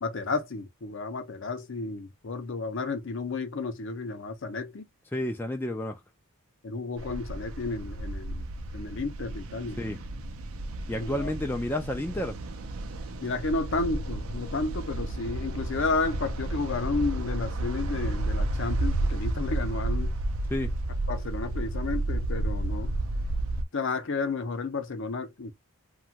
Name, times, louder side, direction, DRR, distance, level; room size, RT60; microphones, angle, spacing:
voice 1, 0.0-4.9 6.6-8.5 8.7-9.8 11.0-11.3 13.2-20.1 21.1-22.9 23.7-25.5, left 3 dB, 55° left, 0.6 m, -32 dB
voice 2, 5.1-6.0 9.8-10.0 10.9-12.4 20.5-20.7, left 1 dB, 10° left, 0.3 m, -30 dB
sound 1, 7.0-23.6, right 2 dB, 70° right, 0.5 m, -32 dB
2.9 x 2.2 x 2.7 m
head